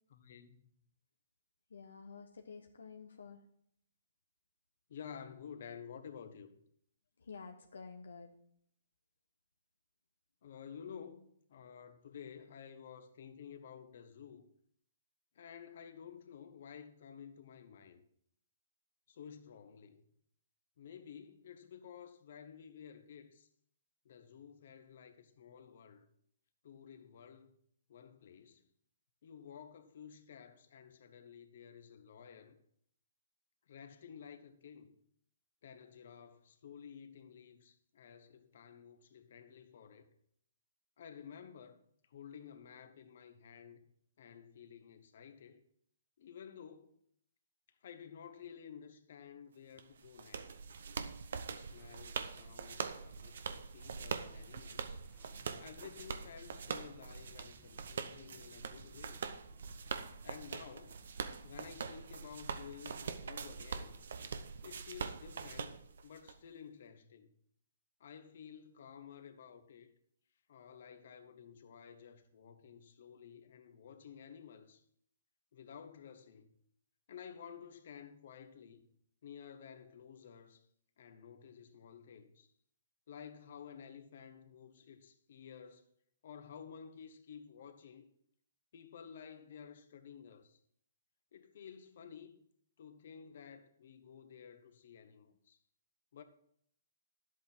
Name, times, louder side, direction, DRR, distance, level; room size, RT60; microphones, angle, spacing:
voice 1, 0.1-0.6 4.9-6.5 10.4-14.5 15.3-18.0 19.1-20.0 20.8-23.5 24.0-26.1 26.6-27.5 27.9-28.7 29.2-32.6 33.7-35.0 35.6-40.1 41.0-41.8 42.1-43.8 44.2-45.6 46.2-46.9 47.8-50.6 51.5-55.0 55.6-59.3 60.2-61.0 61.4-64.0 64.6-65.8 66.0-67.3 68.0-69.9 70.5-74.8 75.5-76.5 77.1-78.8 79.2-80.6 81.0-82.5 83.1-85.8 86.2-88.1 88.7-90.6 91.3-92.5 92.8-95.6 96.1-96.2, left 7 dB, 60° left, 1.3 m, -53 dB
voice 2, 1.7-3.4 7.2-8.3, left 5 dB, 80° left, 0.9 m, -50 dB
sound 1, 49.8-66.3, right 5 dB, 65° right, 0.8 m, -43 dB
sound 2, 55.0-66.9, left 3 dB, 15° left, 1.2 m, -66 dB
11.0 x 8.2 x 4.5 m
hypercardioid pair, 140°, 0 cm